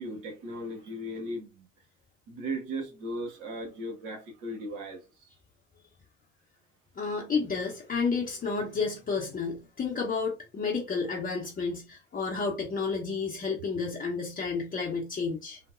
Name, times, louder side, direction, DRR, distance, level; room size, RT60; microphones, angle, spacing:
voice 1, 0.0-1.7 2.3-5.3, right 1 dB, 60° right, 1.3 m, -37 dB
voice 2, 7.0-15.6, left 4 dB, 25° left, 0.8 m, -31 dB
3.9 x 2.2 x 2.4 m
hypercardioid pair, 75°, 35 cm